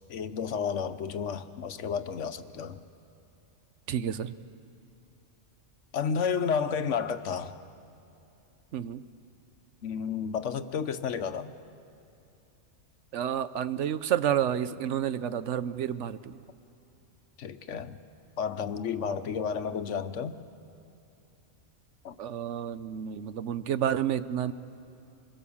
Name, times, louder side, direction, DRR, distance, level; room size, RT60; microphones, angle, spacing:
voice 1, 0.1-2.8 5.9-7.5 9.8-11.5 17.4-18.0 18.4-20.4 22.0-22.2, left 6 dB, 85° left, 11 dB, 1.2 m, -31 dB
voice 2, 3.9-4.3 8.7-9.0 13.1-16.4 19.1-19.2 22.2-24.5, right 10 dB, 80° right, 14 dB, 1.1 m, -30 dB
26.0 x 21.5 x 7.1 m, 2.7 s
omnidirectional pair, 1.2 m